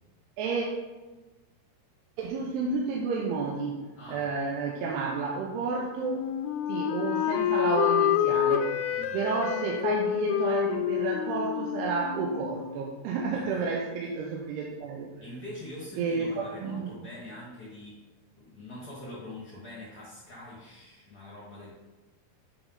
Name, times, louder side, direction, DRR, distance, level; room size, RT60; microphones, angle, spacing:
voice 1, 2.2-6.2 6.7-8.7 9.1-15.1 16.0-16.9, right 4 dB, 90° right, -1 dB, 2.8 m, -31 dB
voice 2, 4.0-4.5 8.9-9.2 13.3-13.5 15.2-18.0 18.3-21.7, left 1 dB, 50° left, -6 dB, 1.1 m, -44 dB
Wind instrument woodwind instrument, 6.0-12.8, left 11 dB, 90° left, 2.6 m, -28 dB
8.7 x 5.1 x 3.9 m, 1.2 s
omnidirectional pair, 4.6 m